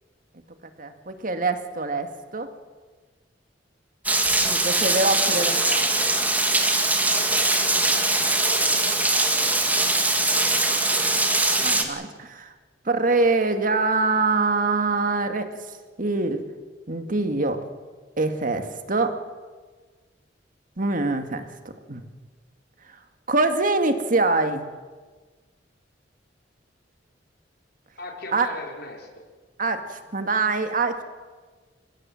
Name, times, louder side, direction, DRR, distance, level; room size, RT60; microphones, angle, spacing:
voice 1, 0.8-2.5 4.4-5.5 10.7-10.9 11.6-12.5 12.9-15.5 16.0-16.4 16.9-17.6 18.2-19.2 20.8-21.5 21.9-22.0 23.3-24.6 28.3-28.5 29.6-31.0, right 3 dB, 50° right, 8 dB, 2.1 m, -24 dB
Rain, 4.0-11.8, right 2 dB, 10° right, 2.2 m, -22 dB
voice 2, 5.2-6.2 7.1-10.4 28.0-29.2, left 2 dB, 60° left, 2 dB, 4.6 m, -39 dB
29.0 x 16.5 x 7.8 m, 1.4 s
head